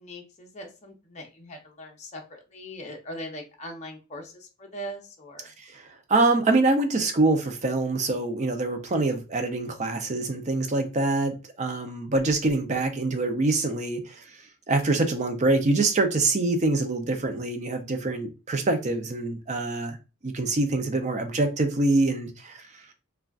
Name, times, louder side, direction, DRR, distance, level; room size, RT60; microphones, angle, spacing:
voice 1, 0.0-5.5, equal, 35° left, 0.6 m, -40 dB
voice 2, 5.7-14.3 14.7-20.0 20.2-22.6, right 2 dB, 35° right, 0.5 m, -25 dB
3.7 x 2.2 x 2.3 m
head